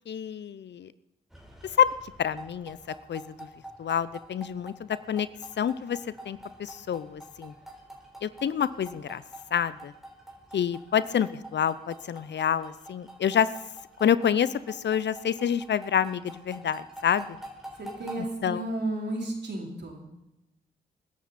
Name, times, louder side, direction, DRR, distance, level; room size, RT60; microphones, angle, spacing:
voice 1, 0.1-0.9 1.8-1.9 2.2-2.8 3.1-3.5 3.8-5.3 5.6-6.0 6.3-7.5 8.2-9.2 9.5-9.9 10.5-13.5 14.0-17.3 18.4-18.6, left 8 dB, 60° left, 17 dB, 0.7 m, -27 dB
sound 1, 1.3-18.3, right 1 dB, ahead, 4.0 m, -47 dB
voice 2, 17.8-20.0, right 1 dB, 55° right, 0 dB, 4.0 m, -33 dB
21.0 x 11.0 x 4.2 m, 0.89 s
supercardioid pair, 40°, 20 cm